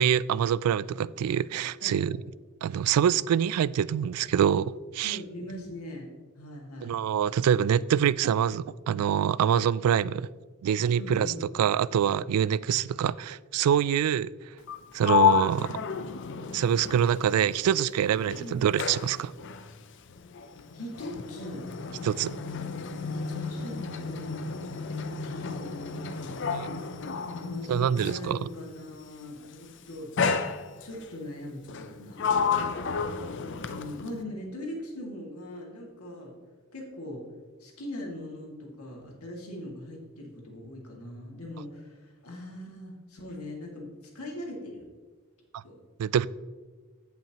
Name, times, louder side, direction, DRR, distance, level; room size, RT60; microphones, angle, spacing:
voice 1, 0.0-2.2 2.6-5.2 6.8-10.3 10.6-11.3 11.6-14.3 14.9-15.8 16.5-19.3 22.0-22.4 26.5-26.7 27.7-28.4 45.5-45.6 46.0-46.3, right 9 dB, 90° right, 0.3 m, -25 dB
voice 2, 5.0-6.1 6.4-6.9 11.0-11.5 18.4-18.6 20.7-21.7 23.1-26.5 27.3-30.1 30.8-32.3 33.6-36.3 36.7-37.2 37.6-43.9 44.1-44.9 45.6-45.8, left 1 dB, 85° left, 2.2 m, -41 dB
Sliding door, 14.6-17.9 18.2-28.3 29.2-29.5 30.2-31.1 31.7-34.2, left 6 dB, 55° left, 0.5 m, -31 dB
16.0 x 5.7 x 2.9 m
head